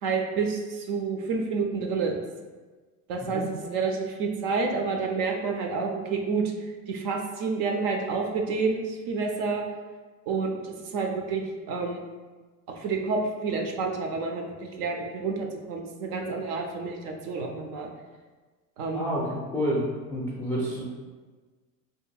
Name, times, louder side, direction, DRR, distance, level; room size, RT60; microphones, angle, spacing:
voice 1, 0.0-2.2 3.1-9.6 10.3-12.0 12.7-17.9 18.8-19.2, right 4 dB, 50° right, 2 dB, 0.5 m, -29 dB
voice 2, 18.9-19.8 20.1-20.8, equal, 5° left, -6 dB, 0.4 m, -29 dB
2.7 x 2.5 x 2.2 m, 1.3 s
hypercardioid pair, 90°, 49 cm